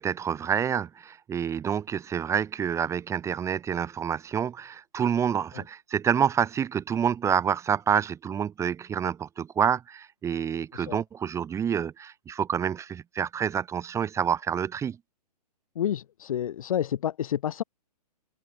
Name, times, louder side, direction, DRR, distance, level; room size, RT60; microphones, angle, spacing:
voice 1, 0.0-15.0, right 8 dB, 15° right, 1.4 m, -28 dB
voice 2, 15.8-17.6, left 10 dB, 55° left, 2.3 m, -29 dB
figure-of-eight pair, 120°, 21 cm